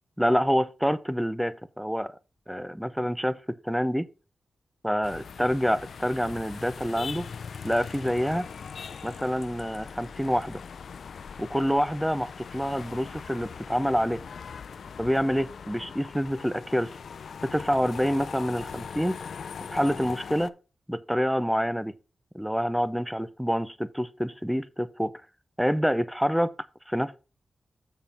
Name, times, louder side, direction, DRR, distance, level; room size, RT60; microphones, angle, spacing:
voice 1, 0.2-2.2 2.5-4.1 4.8-7.3 7.6-8.5 9.0-10.6 11.4-14.2 15.0-16.9 17.4-19.2 19.7-20.5 20.9-21.9 22.3-25.1 25.6-26.5 26.9-27.2, equal, ahead, 0.6 m, -27 dB
sound 1, 5.0-20.5, left 6 dB, 80° left, 0.4 m, -41 dB
7.5 x 4.4 x 5.3 m
wide cardioid pair, 100°, 0 cm